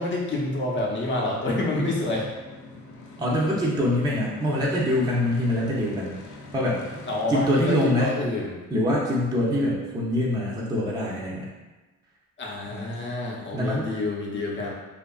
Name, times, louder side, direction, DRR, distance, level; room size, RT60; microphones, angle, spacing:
voice 1, 0.0-2.3 7.1-8.6 12.4-14.7, left 2 dB, 40° left, -2 dB, 0.7 m, -27 dB
sound 1, 0.6-7.3, left 2 dB, 75° left, 0.5 m, -45 dB
voice 2, 3.2-6.2 6.5-6.8 7.3-8.1 8.7-11.5 12.7-13.0 13.5-13.9, left 1 dB, 15° right, -4 dB, 0.5 m, -24 dB
2.7 x 2.4 x 2.3 m, 1.2 s
cardioid pair, 90°, 30 cm